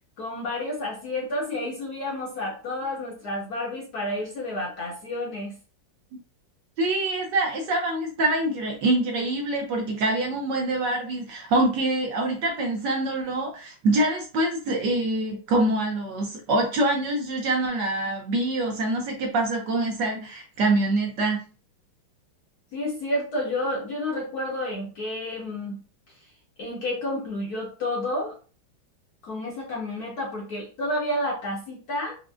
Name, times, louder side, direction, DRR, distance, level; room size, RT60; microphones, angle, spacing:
voice 1, 0.2-5.5 22.7-25.8 26.6-28.3 29.2-32.2, left 1 dB, 65° left, -2 dB, 1.0 m, -30 dB
voice 2, 6.8-21.4, right 2 dB, 65° right, 1 dB, 1.2 m, -25 dB
4.7 x 2.1 x 2.5 m, 0.37 s
omnidirectional pair, 2.3 m